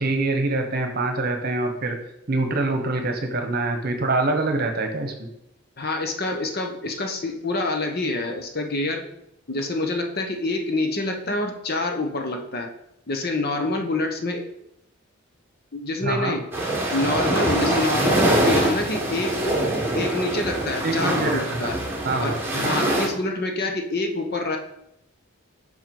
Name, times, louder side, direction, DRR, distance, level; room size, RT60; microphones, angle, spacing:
voice 1, 0.0-2.0 2.3-5.3 16.0-16.3 20.8-21.7 22.0-22.4, right 2 dB, 45° right, 5 dB, 1.1 m, -25 dB
voice 2, 5.8-9.1 9.5-12.7 13.1-14.5 15.7-16.5 16.9-19.6 19.9-21.8 22.2-24.6, left 2 dB, 45° left, 3 dB, 1.0 m, -26 dB
sound 1, 16.5-23.1, right 1 dB, 10° right, 1.5 m, -24 dB
6.1 x 5.6 x 5.4 m, 0.80 s
head